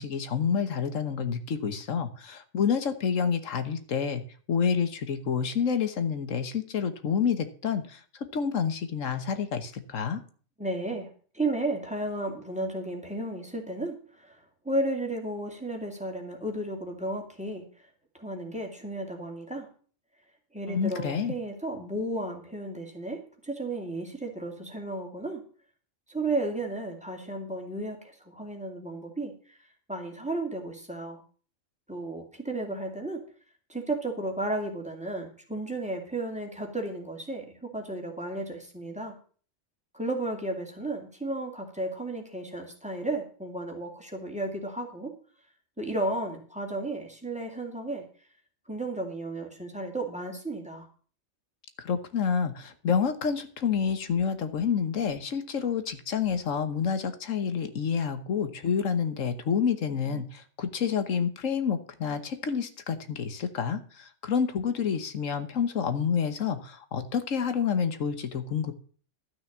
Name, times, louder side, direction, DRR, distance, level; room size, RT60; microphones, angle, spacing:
voice 1, 0.0-4.2 4.5-7.8 8.3-10.2 20.7-21.3 51.8-68.7, left 6 dB, 85° left, 10 dB, 1.5 m, -28 dB
voice 2, 10.6-14.4 14.6-17.9 18.1-19.7 20.5-25.4 26.1-29.6 29.9-31.2 31.9-33.2 33.7-39.2 39.9-45.1 45.8-48.0 48.7-50.9, right 2 dB, 5° right, 2 dB, 2.4 m, -33 dB
12.5 x 6.3 x 7.3 m, 0.42 s
omnidirectional pair, 1.3 m